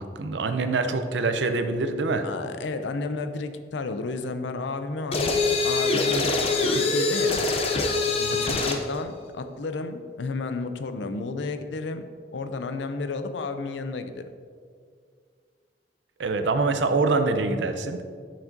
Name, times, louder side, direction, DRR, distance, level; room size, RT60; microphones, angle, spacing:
voice 1, 0.0-2.2 8.2-8.6 16.2-18.0, right 3 dB, 85° right, 8 dB, 0.5 m, -25 dB
voice 2, 2.2-7.4 8.3-12.0 12.3-14.2, left 3 dB, 90° left, 9 dB, 0.5 m, -32 dB
sound 1, 5.1-8.9, left 3 dB, 35° left, 0.5 m, -24 dB
7.0 x 5.9 x 2.6 m, 2.1 s
head